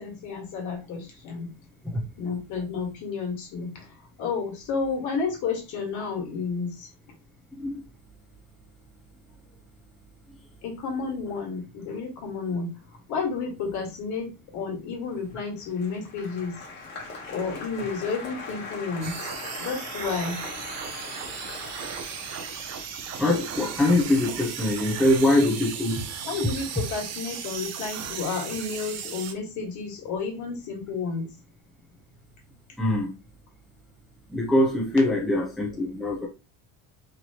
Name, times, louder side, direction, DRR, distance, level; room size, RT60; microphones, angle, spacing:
voice 1, 0.0-1.5 2.2-6.9 10.6-12.7 13.1-16.6 17.3-19.3 19.6-20.4 26.3-31.3, left 5 dB, 55° left, 1.6 m, -31 dB
voice 2, 7.5-7.8 23.2-26.1 32.8-33.1 34.3-36.3, left 1 dB, ahead, 0.5 m, -23 dB
Applause, 15.2-25.6 25.8-26.5, left 3 dB, 30° left, 1.1 m, -41 dB
sound 1, 19.0-29.3, right 7 dB, 45° right, 0.7 m, -36 dB
4.2 x 3.0 x 2.8 m
cardioid pair, 175°, 36 cm